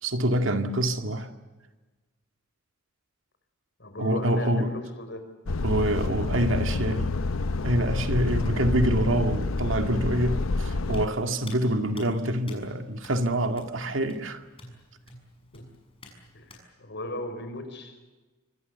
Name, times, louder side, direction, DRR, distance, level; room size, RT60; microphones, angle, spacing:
voice 1, 0.0-1.3 4.0-4.7 5.6-7.2 7.6-14.4, right 1 dB, 65° right, 6 dB, 2.1 m, -26 dB
voice 2, 3.8-5.3 15.5-15.6 16.3-18.1, left 1 dB, 55° left, 8 dB, 5.2 m, -37 dB
Truck, 5.5-11.1, left 3 dB, 80° left, 0.8 m, -28 dB
Hands, 10.9-16.6, left 2 dB, 25° left, 6.5 m, -51 dB
27.0 x 25.0 x 6.9 m, 1.2 s
head